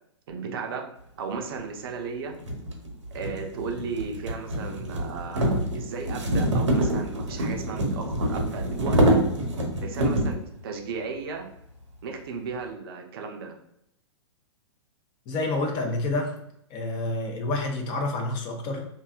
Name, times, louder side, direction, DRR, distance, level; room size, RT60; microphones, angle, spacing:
voice 1, 0.3-0.9 1.2-2.4 3.1-9.2 9.8-11.5 12.0-13.6, right 5 dB, 50° right, 3 dB, 0.5 m, -35 dB
sound 1, 1.6-1.7 2.4-10.4, right 1 dB, 80° right, 0.8 m, -25 dB
voice 2, 15.3-16.4 16.7-18.8, left 2 dB, 30° left, 3 dB, 0.5 m, -28 dB
2.6 x 2.3 x 2.3 m, 0.76 s
hypercardioid pair, 115°, 15 cm